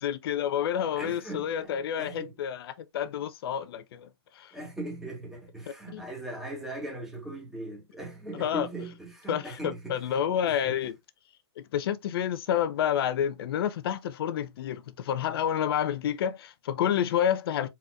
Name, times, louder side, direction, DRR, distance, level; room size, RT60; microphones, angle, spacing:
voice 1, 0.0-4.1 4.3-4.5 5.9-6.0 8.3-8.7 9.3-11.0 11.6-17.7, left 9 dB, 60° left, 0.8 m, -29 dB
voice 2, 1.0-2.3 4.5-10.2 10.5-10.9, right 2 dB, 5° right, 2.0 m, -39 dB
4.4 x 3.9 x 2.4 m
hypercardioid pair, 135°, 14 cm